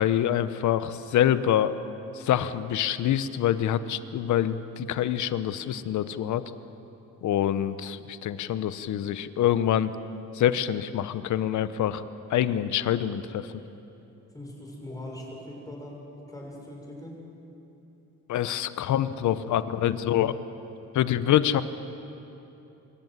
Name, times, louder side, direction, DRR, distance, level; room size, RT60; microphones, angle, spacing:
voice 1, 0.0-1.7 2.1-6.4 7.2-9.9 10.3-12.0 12.3-13.5 18.3-20.3 20.9-21.6, left 11 dB, 75° left, 13 dB, 0.9 m, -25 dB
voice 2, 14.3-17.2, left 1 dB, 10° left, -1 dB, 6.5 m, -41 dB
25.0 x 14.0 x 9.4 m, 2.9 s
cardioid pair, 90°, 30 cm